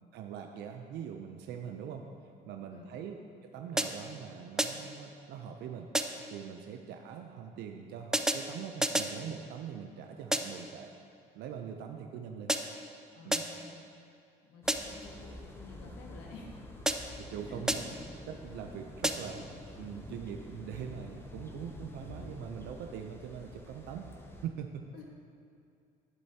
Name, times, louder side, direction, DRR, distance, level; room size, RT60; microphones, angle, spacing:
voice 1, 0.1-2.0 2.5-5.9 6.3-10.9 11.3-12.5 13.2-13.4 17.2-17.9 18.3-19.5 19.8-24.1 24.4-24.8, right 8 dB, 80° right, 4 dB, 0.6 m, -42 dB
sound 1, 3.8-4.2 4.6-5.0 5.9-6.4 8.1-9.2 10.3-10.7 12.5-12.9 13.3-13.7 14.7-15.1 16.9-17.3 17.7-18.1 19.0-19.5, right 1 dB, 5° right, 0.4 m, -32 dB
voice 2, 13.1-13.8 14.4-16.6 17.4-17.6 24.9-25.0, left 3 dB, 85° left, 0 dB, 1.4 m, -51 dB
sound 2, 14.6-24.5, left 1 dB, 15° left, 0.8 m, -48 dB
11.0 x 7.7 x 2.8 m, 2.5 s
cardioid pair, 110°, 17 cm